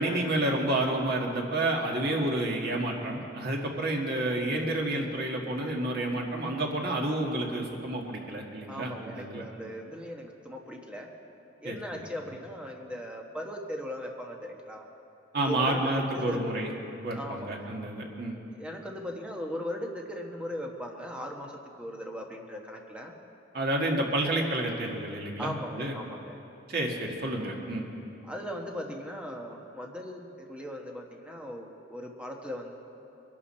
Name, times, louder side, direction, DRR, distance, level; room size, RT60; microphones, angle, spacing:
voice 1, 0.0-9.5 11.6-11.8 15.3-16.7 17.0-18.3 23.5-25.9 26.7-27.8, right 1 dB, 55° right, 0 dB, 1.9 m, -30 dB
voice 2, 8.7-11.1 11.6-14.8 15.4-16.5 17.2-17.7 18.5-23.1 25.4-26.4 28.2-32.7, equal, 5° right, 1 dB, 1.3 m, -38 dB
21.5 x 11.5 x 4.4 m, 2.8 s
head